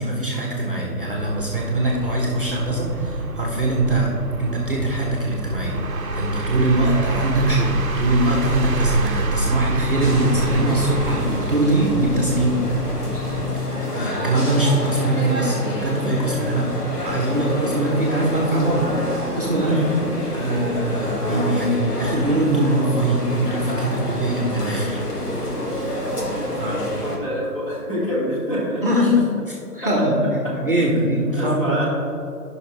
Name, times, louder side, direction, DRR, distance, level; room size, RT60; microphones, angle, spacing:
voice 1, 0.0-4.1 4.4-12.6 13.9-16.7 17.0-18.9 19.4-25.0 26.6-26.8 28.8-29.2 29.7-31.8, right 1 dB, 35° right, -1 dB, 1.0 m, -22 dB
sound 1, 1.0-13.7, right 2 dB, 60° right, 0.8 m, -27 dB
sound 2, 10.0-27.2, left 1 dB, 75° left, 1.9 m, -27 dB
voice 2, 13.7-14.1 19.6-20.1 26.6-28.8 29.8-30.1 30.4-30.5 30.9-31.8, equal, 20° left, -9 dB, 1.7 m, -28 dB
13.0 x 5.8 x 3.2 m, 2.6 s
figure-of-eight pair, 170°, 48 cm